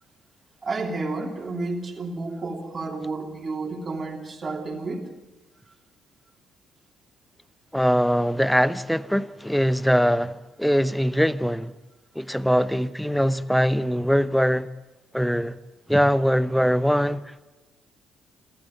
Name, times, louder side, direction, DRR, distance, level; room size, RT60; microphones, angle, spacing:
voice 1, 0.6-5.1, right 3 dB, 30° right, 3.2 m, -31 dB
voice 2, 7.7-11.7 12.1-14.7 15.1-15.6 15.9-17.2, equal, ahead, 0.8 m, -22 dB
28.5 x 13.0 x 8.6 m
figure-of-eight pair, 45°, 0 cm